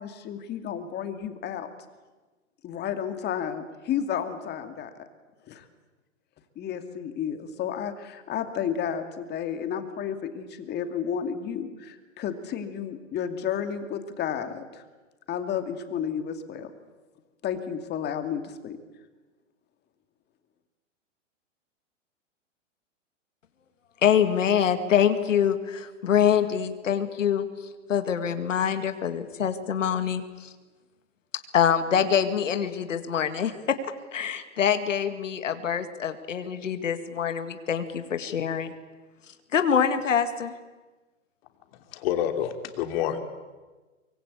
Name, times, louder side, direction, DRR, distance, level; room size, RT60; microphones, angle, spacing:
voice 1, 0.0-1.7 2.6-4.9 5.5-5.6 6.6-14.8 15.3-16.7 17.4-18.8, left 8 dB, 25° left, 8 dB, 2.5 m, -32 dB
voice 2, 24.0-30.5 31.5-33.8 34.1-38.7 39.5-40.5, left 8 dB, 80° left, 9 dB, 2.1 m, -25 dB
voice 3, 41.7-43.2, left 10 dB, 50° left, 6 dB, 3.2 m, -28 dB
24.5 x 23.5 x 8.4 m, 1.2 s
hypercardioid pair, 120°, 38 cm